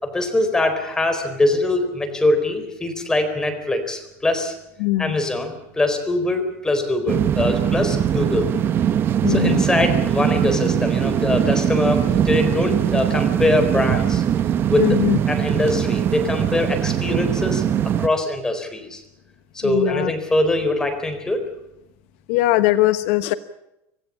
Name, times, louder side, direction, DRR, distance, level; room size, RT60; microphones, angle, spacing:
voice 1, 0.0-4.5 5.0-8.5 9.3-14.2 14.7-15.0 15.3-17.6 18.0-19.0 19.5-21.4, left 2 dB, 10° left, 7 dB, 4.2 m, -22 dB
voice 2, 4.8-5.2 9.2-9.6 14.8-15.2 19.6-20.1 22.3-23.3, left 17 dB, 75° left, 12 dB, 1.1 m, -20 dB
sound 1, 7.1-18.1, right 9 dB, 30° right, 1.0 m, -21 dB
26.5 x 16.5 x 8.6 m, 0.87 s
supercardioid pair, 150°, 7 cm